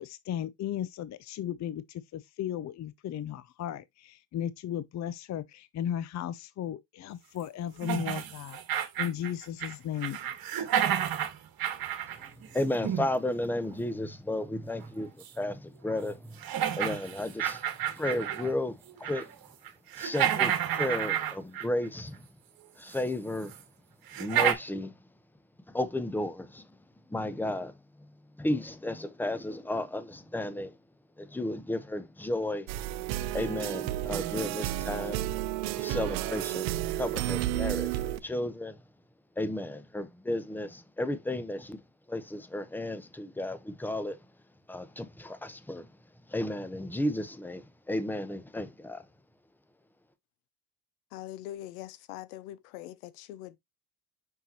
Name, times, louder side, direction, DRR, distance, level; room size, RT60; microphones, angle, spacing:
voice 1, 0.0-10.3, left 10 dB, 40° left, 0.6 m, -36 dB
sound 1, 7.8-9.7 10.0-13.1 15.2-15.3 15.9-16.0 16.4-18.5 18.9-19.3 19.6-21.9 22.9-23.0 23.5-23.6 24.1-24.5, right 10 dB, 50° right, 1.6 m, -30 dB
voice 2, 12.5-16.4 16.7-17.6 17.9-19.3 20.0-22.2 22.8-23.5 24.2-24.9 25.7-26.7 27.1-27.7 28.4-30.8 31.2-32.7 33.3-35.3 35.7-38.8 39.4-41.8 42.1-44.2 44.7-45.9 46.3-49.0, left 1 dB, 5° left, 0.9 m, -33 dB
sound 2, 32.7-38.2, right 14 dB, 85° right, 0.7 m, -32 dB
voice 3, 51.1-53.6, left 13 dB, 90° left, 0.9 m, -42 dB
5.8 x 5.5 x 2.9 m
supercardioid pair, 85°, 45 cm